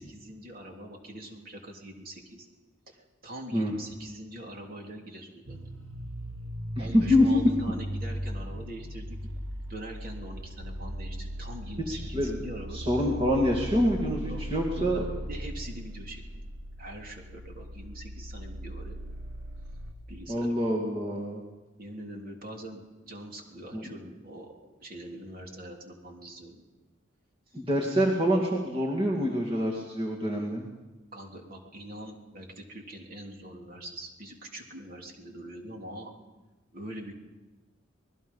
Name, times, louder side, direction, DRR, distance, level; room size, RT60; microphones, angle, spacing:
voice 1, 0.0-2.5 2.9-5.6 6.8-9.2 9.7-12.8 14.2-16.4 16.8-19.0 20.1-20.5 21.8-24.5 24.8-26.6 27.5-27.6 31.1-36.1 36.7-37.1, right 1 dB, 45° right, 1 dB, 3.3 m, -43 dB
sound 1, 5.5-19.9, equal, 80° right, 1.9 m, -38 dB
voice 2, 6.8-7.3 11.9-12.3 12.7-15.1 20.3-21.4 23.7-23.8 27.5-30.7, equal, 25° right, -2 dB, 2.4 m, -26 dB
27.0 x 20.0 x 5.5 m, 1.1 s
head